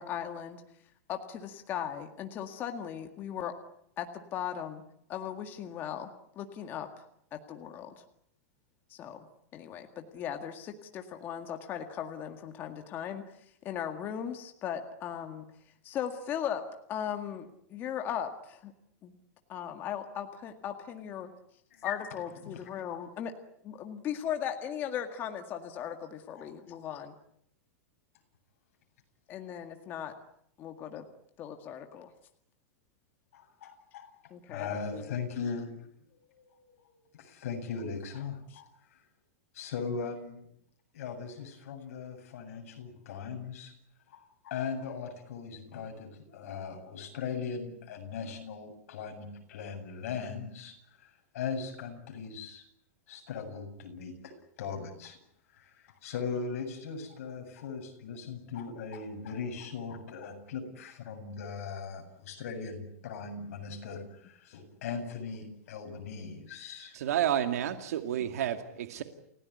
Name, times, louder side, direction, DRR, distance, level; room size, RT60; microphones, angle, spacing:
voice 1, 0.0-3.5 4.0-4.8 5.1-7.1 7.3-8.0 8.9-9.3 9.5-16.6 16.9-18.7 19.0-19.2 19.5-21.3 21.8-23.3 23.6-27.1 29.3-30.1 30.6-31.1 31.4-32.1 34.3-35.2 38.5-38.6, left 9 dB, 25° left, 5 dB, 1.9 m, -38 dB
voice 2, 33.3-34.1 34.5-35.7 36.1-39.0 39.5-40.5 40.9-43.8 44.1-52.6 53.1-55.2 55.5-67.0, left 5 dB, 60° left, 3 dB, 7.8 m, -39 dB
voice 3, 66.9-69.0, right 10 dB, 70° right, 7 dB, 2.3 m, -30 dB
29.5 x 17.0 x 9.6 m, 0.73 s
supercardioid pair, 165°, 9 cm